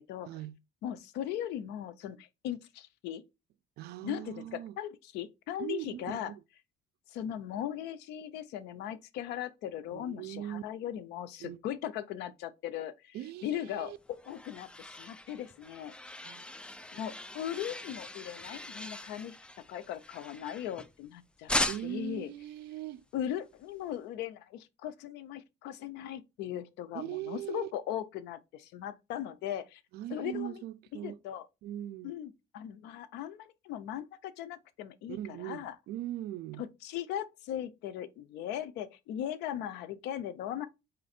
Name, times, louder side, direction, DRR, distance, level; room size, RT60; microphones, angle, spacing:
voice 1, 0.2-0.6 3.8-4.8 5.6-6.4 9.9-10.6 11.4-11.6 13.1-14.0 16.2-16.5 21.7-23.0 26.9-27.7 29.9-31.2 31.6-32.1 35.1-36.7, right 13 dB, 75° right, 0.4 m, -40 dB
voice 2, 0.8-3.2 4.0-6.3 7.1-13.2 13.4-15.9 16.9-19.4 19.7-22.3 23.1-29.8 30.1-30.6 31.0-31.5 32.0-35.8 36.6-40.7, left 10 dB, 85° left, 0.5 m, -38 dB
sound 1, 13.8-21.1 21.5-22.1, left 1 dB, 5° left, 0.3 m, -39 dB
3.8 x 3.2 x 4.2 m
cardioid pair, 110°, 17 cm